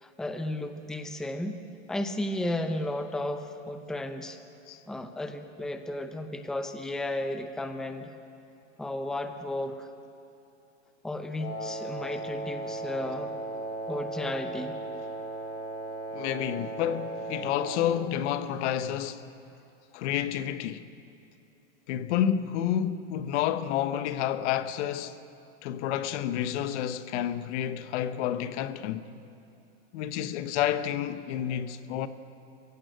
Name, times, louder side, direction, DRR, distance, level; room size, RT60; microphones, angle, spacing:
voice 1, 0.0-1.6 1.9-4.4 4.9-8.1 8.8-9.9 11.0-13.3 13.9-14.8, left 1 dB, ahead, 0.7 m, -33 dB
Wind instrument woodwind instrument, 11.4-17.8, right 2 dB, 30° left, 5.6 m, -36 dB
voice 2, 16.1-19.3 19.9-20.9 21.9-25.2 25.6-29.1 29.9-32.1, left 10 dB, 70° left, 1.1 m, -30 dB
23.0 x 16.0 x 7.8 m
supercardioid pair, 150°, 36 cm